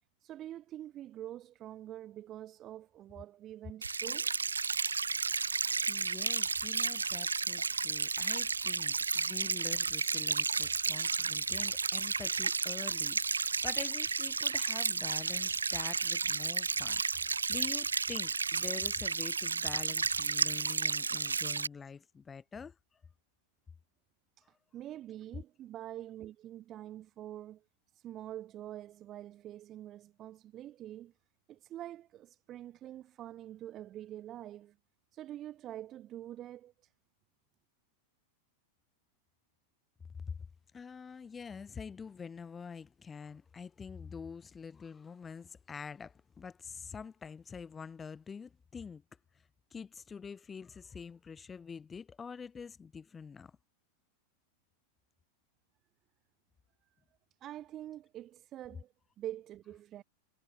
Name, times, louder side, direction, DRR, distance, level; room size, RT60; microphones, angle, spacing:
voice 1, 0.2-4.3 24.4-24.5 24.7-27.6 28.0-31.1 31.5-34.8 35.1-36.7 57.4-60.0, right 12 dB, 30° right, 1.2 m, -45 dB
sound 1, 3.8-21.7, right 5 dB, 75° right, 0.4 m, -32 dB
voice 2, 5.6-22.8 40.3-40.4 40.7-49.0 49.7-53.6, left 6 dB, 15° left, 4.0 m, -46 dB
figure-of-eight pair, 90°, 0 cm